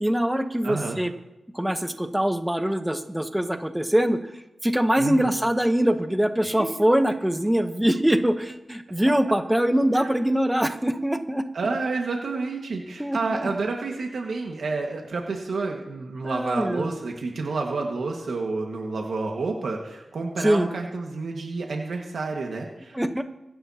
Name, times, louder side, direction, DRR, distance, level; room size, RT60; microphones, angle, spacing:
voice 1, 0.0-1.1 1.5-4.2 4.6-11.5 13.0-13.5 16.2-16.9 20.4-20.7 22.9-23.2, right 1 dB, 5° right, 8 dB, 0.9 m, -23 dB
voice 2, 0.6-1.0 5.0-5.3 6.4-6.6 9.9-10.2 11.5-23.2, right 3 dB, 90° right, 0 dB, 1.7 m, -29 dB
25.5 x 11.0 x 2.9 m, 0.95 s
wide cardioid pair, 115°, 0 cm